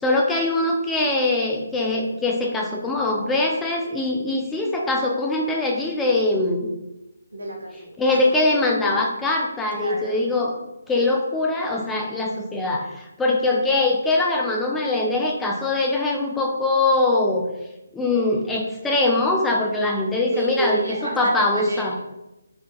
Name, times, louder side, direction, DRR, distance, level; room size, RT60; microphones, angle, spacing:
voice 1, 0.0-6.7 8.0-10.5 10.9-17.5 17.9-20.8 21.2-21.9, left 2 dB, 5° left, -1 dB, 0.3 m, -22 dB
voice 2, 7.3-8.4 9.7-10.2 20.3-21.9, right 1 dB, 80° right, 0 dB, 0.8 m, -30 dB
3.5 x 2.6 x 2.3 m, 0.94 s
figure-of-eight pair, 150°, 0 cm